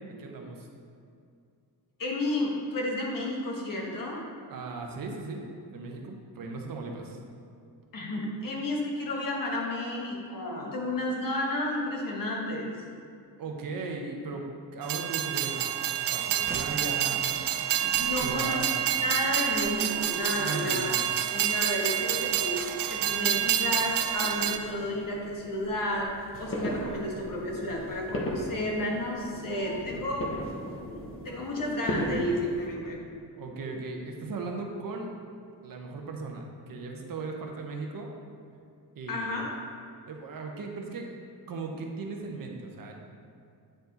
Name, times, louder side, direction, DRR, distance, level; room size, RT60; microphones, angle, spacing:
voice 1, 0.2-0.7 4.5-5.4 5.7-7.2 13.4-14.4 14.7-15.6 15.9-17.4 18.2-18.8 20.3-21.1 33.4-35.1 35.6-38.1 39.0-39.4 40.1-41.1 41.5-42.9, right 3 dB, 55° right, 1 dB, 0.8 m, -37 dB
voice 2, 2.0-4.2 7.9-12.8 18.0-18.6 19.0-20.9 21.3-30.3 31.2-33.0 39.1-39.5, left 1 dB, 50° left, -2 dB, 1.3 m, -32 dB
Train, 14.8-24.6, right 10 dB, 80° right, 0.5 m, -28 dB
Slam, 16.3-21.7, right 3 dB, 20° right, 0.4 m, -47 dB
sound 1, 21.8-32.7, left 1 dB, 30° left, 0.8 m, -38 dB
9.0 x 4.7 x 3.9 m, 2.4 s
wide cardioid pair, 175°, 41 cm